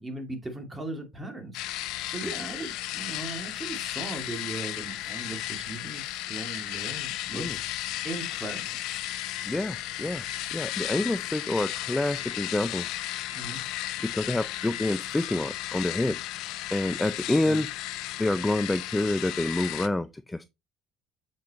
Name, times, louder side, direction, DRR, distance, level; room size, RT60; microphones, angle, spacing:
voice 1, 0.0-1.6 2.1-7.5 8.0-8.8 13.3-13.7 17.4-17.6, right 2 dB, 15° right, 2.3 m, -38 dB
sound 1, 1.5-19.9, left 14 dB, 70° left, 0.6 m, -34 dB
voice 2, 9.4-10.2 10.5-12.9 14.0-16.2 16.7-17.7 18.2-20.5, left 2 dB, 10° left, 0.4 m, -28 dB
7.4 x 5.2 x 2.9 m
supercardioid pair, 105°, 0 cm